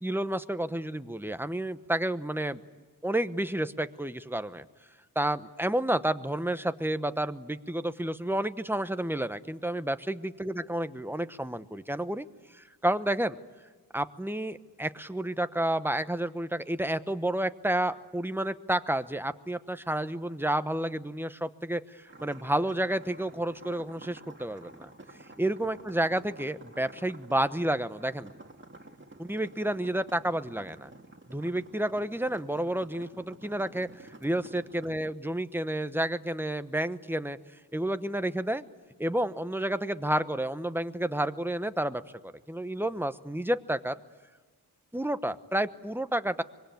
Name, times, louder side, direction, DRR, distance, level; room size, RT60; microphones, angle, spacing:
voice 1, 0.0-2.6 3.0-4.6 5.1-12.3 12.5-13.4 13.9-24.9 25.4-28.3 29.2-30.9 31.3-37.4 37.7-38.6 39.0-44.0 44.9-46.4, right 1 dB, 5° right, 11 dB, 1.0 m, -30 dB
sound 1, 22.1-35.0, right 2 dB, 30° right, 2.0 m, -50 dB
25.0 x 22.5 x 9.3 m, 1.4 s
wide cardioid pair, 75°, 39 cm